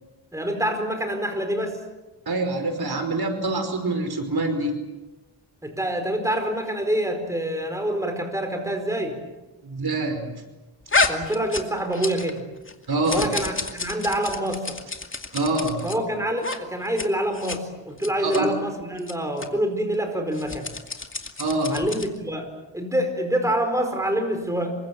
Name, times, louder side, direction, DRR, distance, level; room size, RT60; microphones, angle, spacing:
voice 1, 0.3-1.8 5.6-9.2 11.1-12.5 13.1-14.8 15.8-20.7 21.7-24.7, right 1 dB, 5° right, 4 dB, 4.7 m, -26 dB
voice 2, 2.2-4.7 9.6-10.3 12.9-13.3 15.3-15.9 18.2-18.5 21.4-21.8, right 2 dB, 55° right, 6 dB, 5.2 m, -25 dB
sound 1, 10.9-12.4 12.7-16.0 16.4-16.6 16.8-17.1 17.3-17.6 18.0-18.4 19.0-19.1 19.4-19.5 20.3-22.2, left 3 dB, 25° left, 2.4 m, -29 dB
27.5 x 24.5 x 7.8 m, 1.1 s
wide cardioid pair, 145°, 45 cm